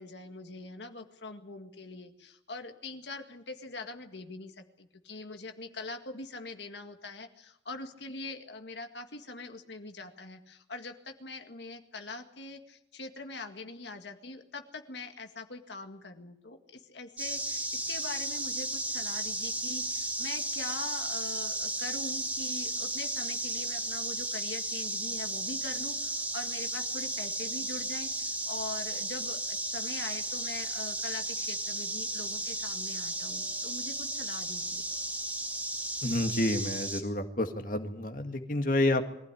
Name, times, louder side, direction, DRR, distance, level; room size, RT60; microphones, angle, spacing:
voice 1, 0.0-34.9, left 3 dB, 75° left, 5 dB, 1.9 m, -43 dB
sound 1, 17.2-37.0, right 1 dB, 10° right, 2.6 m, -34 dB
voice 2, 36.0-39.0, left 1 dB, 50° left, 5 dB, 2.0 m, -29 dB
23.0 x 15.5 x 9.9 m, 0.78 s
head